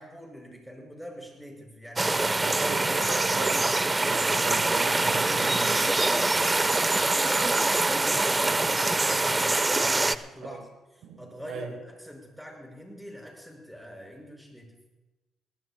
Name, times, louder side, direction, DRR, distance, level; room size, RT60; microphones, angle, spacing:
voice 1, 0.0-2.3 3.6-4.5 5.1-10.6 11.2-14.7, equal, ahead, 0 dB, 5.4 m, -43 dB
sound 1, 2.0-10.2, right 2 dB, 20° right, 0.5 m, -24 dB
voice 2, 2.1-5.9 10.4-10.7 11.0-11.8, right 7 dB, 85° right, 8 dB, 1.1 m, -39 dB
21.5 x 18.0 x 2.2 m, 1.1 s
cardioid pair, 90°, 0 cm